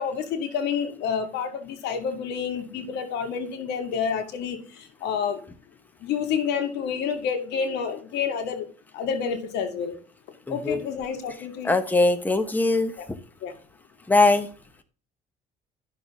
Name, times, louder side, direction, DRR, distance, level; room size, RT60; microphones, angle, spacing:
voice 1, 0.0-5.4 6.0-8.7 8.9-10.0 10.5-11.8 13.0-13.1 13.4-13.6, left 6 dB, 85° left, 6 dB, 1.9 m, -29 dB
voice 2, 10.5-10.8 11.6-12.9 14.1-14.5, left 2 dB, 10° left, 8 dB, 1.1 m, -21 dB
12.0 x 6.4 x 3.6 m, 0.38 s
cardioid pair, 110°, 17 cm